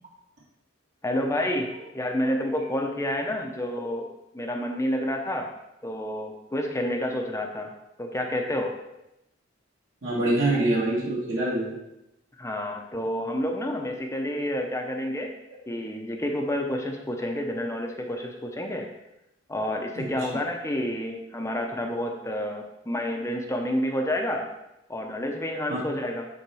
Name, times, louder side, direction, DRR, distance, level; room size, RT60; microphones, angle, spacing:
voice 1, 1.0-5.5 5.8-7.7 8.0-8.7 12.4-15.3 15.7-18.9 19.5-24.4 24.9-26.3, left 1 dB, 15° left, 2 dB, 0.7 m, -29 dB
voice 2, 10.0-11.8 20.0-20.4 25.7-25.8, right 1 dB, 70° right, -7 dB, 2.7 m, -25 dB
9.6 x 3.6 x 4.8 m, 0.89 s
head